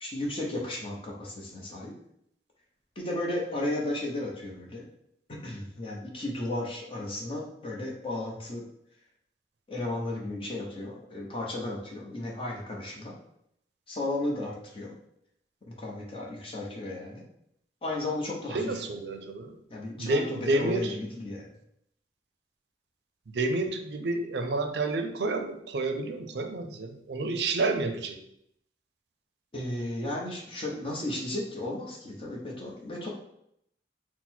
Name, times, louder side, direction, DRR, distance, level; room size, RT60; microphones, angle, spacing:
voice 1, 0.0-1.9 3.0-4.9 5.4-8.6 9.7-13.1 13.9-14.9 15.7-17.2 17.8-18.8 19.7-21.5 29.5-33.1, left 1 dB, 30° left, -1 dB, 0.8 m, -34 dB
voice 2, 18.5-19.5 20.0-20.9 23.3-28.2, right 2 dB, 70° right, 6 dB, 0.5 m, -29 dB
4.0 x 2.1 x 4.3 m, 0.74 s
head